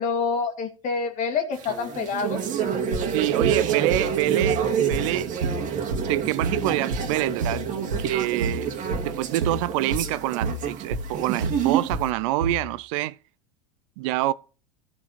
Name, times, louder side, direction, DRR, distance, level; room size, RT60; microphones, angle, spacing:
voice 1, 0.0-2.4, left 5 dB, 45° left, 2.2 m, -27 dB
sound 1, 1.5-12.0, right 8 dB, 45° right, 2.0 m, -28 dB
sound 2, 2.9-12.7, right 2 dB, 85° right, 1.7 m, -30 dB
voice 2, 3.1-5.3 6.1-7.7 8.0-8.7 9.0-13.2 14.0-14.3, right 17 dB, 60° right, 0.5 m, -26 dB
15.5 x 5.3 x 4.2 m
hypercardioid pair, 85°, 18 cm